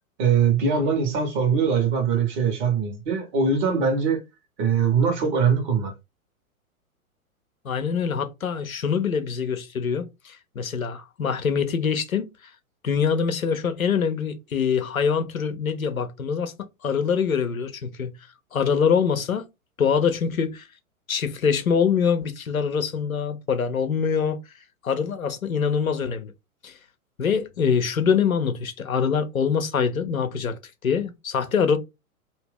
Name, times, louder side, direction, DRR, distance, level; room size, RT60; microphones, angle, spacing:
voice 1, 0.2-4.2 4.6-5.9, right 6 dB, 30° right, 1.3 m, -22 dB
voice 2, 7.6-12.5 12.8-16.5 16.8-18.1 18.5-19.5 19.8-20.7 21.1-24.4 24.8-26.3 26.6-26.8 27.2-31.8, left 6 dB, 70° left, 0.8 m, -24 dB
2.9 x 2.7 x 3.6 m
figure-of-eight pair, 110°, 43 cm